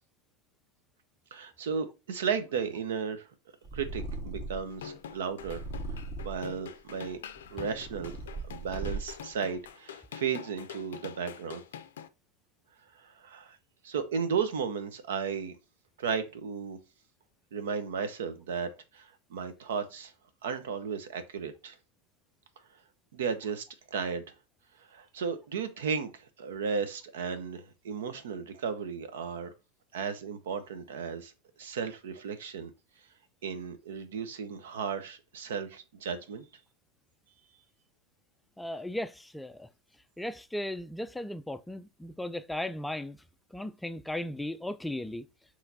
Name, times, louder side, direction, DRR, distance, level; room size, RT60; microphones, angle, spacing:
voice 1, 1.3-3.3 3.7-5.7 6.2-7.2 7.5-8.1 8.5-11.6 13.0-13.6 13.8-15.6 16.0-16.8 17.5-20.1 20.4-21.8 23.1-24.2 24.9-29.5 29.9-31.3 31.6-32.7 33.4-36.4, right 6 dB, 75° right, 0.7 m, -34 dB
Purr, 3.6-4.7 5.4-6.5 7.2-9.3, right 3 dB, 50° right, 2.0 m, -38 dB
sound 1, 4.7-12.1, left 8 dB, 80° left, 0.4 m, -45 dB
voice 2, 38.6-39.7 40.2-43.2 43.5-45.3, left 1 dB, 5° left, 0.3 m, -36 dB
5.7 x 3.1 x 2.7 m
hypercardioid pair, 95°, 0 cm